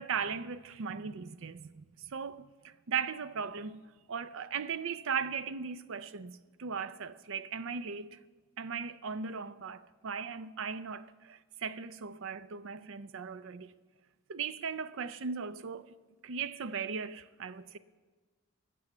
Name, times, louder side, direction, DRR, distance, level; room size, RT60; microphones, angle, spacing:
voice 1, 0.0-3.8 4.1-8.2 8.6-13.7 14.3-15.9 16.2-17.8, right 6 dB, 60° right, 0.5 m, -38 dB
15.5 x 6.2 x 7.8 m
head